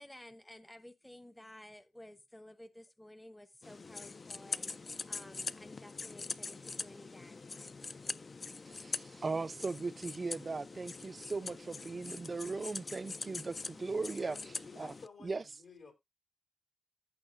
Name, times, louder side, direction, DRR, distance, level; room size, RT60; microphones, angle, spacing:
voice 1, 0.0-7.4, left 1 dB, 10° left, 0.8 m, -54 dB
sound 1, 3.6-15.1, left 4 dB, 45° left, 0.4 m, -43 dB
voice 2, 8.7-14.4 14.8-14.9 15.2-15.4, right 3 dB, 45° right, 0.4 m, -38 dB
voice 3, 14.2-15.9, left 4 dB, 75° left, 3.2 m, -54 dB
15.0 x 5.6 x 2.6 m
cardioid pair, 55°, 0 cm